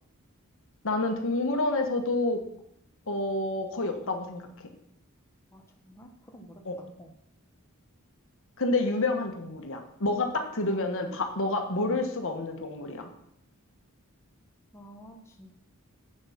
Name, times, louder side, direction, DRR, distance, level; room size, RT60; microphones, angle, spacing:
voice 1, 0.8-2.4 3.1-4.7 6.6-6.8 8.6-13.1, left 2 dB, 60° left, 5 dB, 1.4 m, -29 dB
voice 2, 5.5-6.6 7.0-7.1 9.4-9.5 14.7-15.6, equal, 10° left, 2 dB, 1.0 m, -51 dB
7.9 x 7.8 x 5.7 m, 0.76 s
head